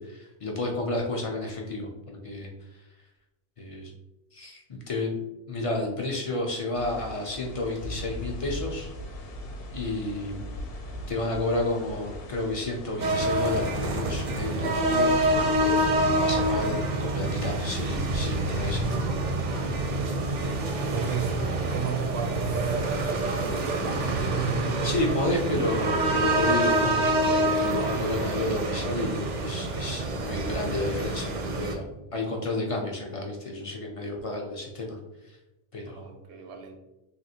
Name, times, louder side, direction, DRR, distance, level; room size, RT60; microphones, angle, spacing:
voice 1, 0.0-2.5 3.6-3.9 4.3-5.1 5.5-8.9 9.7-10.4 11.1-19.2 24.8-31.8 32.1-35.0 35.2-35.4 35.7-36.1, left 2 dB, 50° left, 1 dB, 0.4 m, -31 dB
sound 1, 6.7-16.8, left 1 dB, 70° left, 0.8 m, -40 dB
sound 2, 13.0-31.7, right 1 dB, 55° right, 0.5 m, -27 dB
voice 2, 19.9-25.3 35.9-36.8, right 6 dB, 85° right, 3 dB, 0.9 m, -34 dB
3.4 x 2.4 x 2.7 m, 0.97 s
omnidirectional pair, 1.1 m